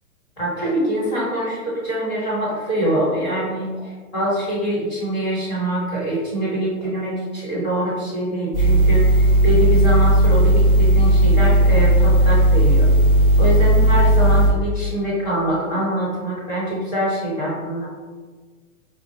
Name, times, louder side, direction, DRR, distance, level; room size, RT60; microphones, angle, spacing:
voice 1, 0.4-12.9 13.4-17.9, right 1 dB, 30° left, -7 dB, 1.3 m, -24 dB
sound 1, 8.5-14.5, right 1 dB, 5° right, 0.6 m, -15 dB
5.2 x 2.2 x 2.8 m, 1.4 s
hypercardioid pair, 175°, 44 cm